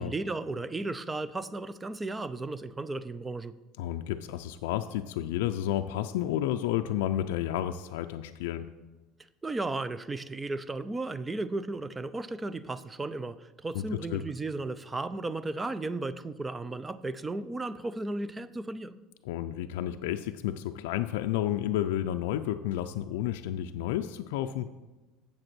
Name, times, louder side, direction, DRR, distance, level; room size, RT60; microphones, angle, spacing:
voice 1, 0.0-3.5 9.4-19.0, right 2 dB, 15° right, 15 dB, 0.4 m, -35 dB
voice 2, 3.8-8.7 13.7-14.2 19.2-24.7, left 12 dB, 90° left, 7 dB, 0.3 m, -31 dB
7.8 x 7.1 x 6.1 m, 1.2 s
cardioid pair, 135°, 0 cm